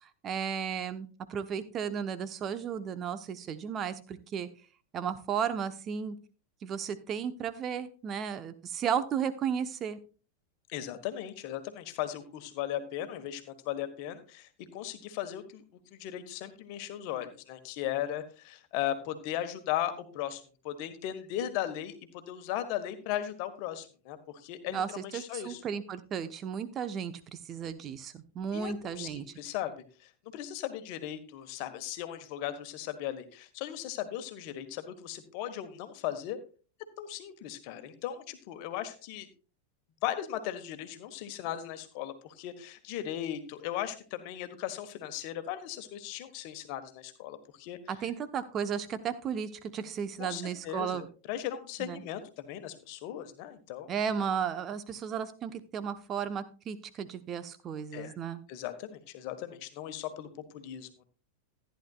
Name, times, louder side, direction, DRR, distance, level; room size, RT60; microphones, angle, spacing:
voice 1, 0.0-4.5 4.9-6.2 6.6-10.0 24.7-29.3 47.9-51.1 51.8-52.0 53.9-58.4, right 7 dB, 30° right, 12 dB, 1.0 m, -34 dB
voice 2, 10.7-15.6 15.9-25.6 28.5-29.7 30.0-36.4 37.0-39.3 40.0-47.8 50.2-53.9 57.9-58.1 58.5-61.0, left 11 dB, 45° left, 9 dB, 1.4 m, -37 dB
14.5 x 10.5 x 2.4 m, 0.36 s
figure-of-eight pair, 90°, 0 cm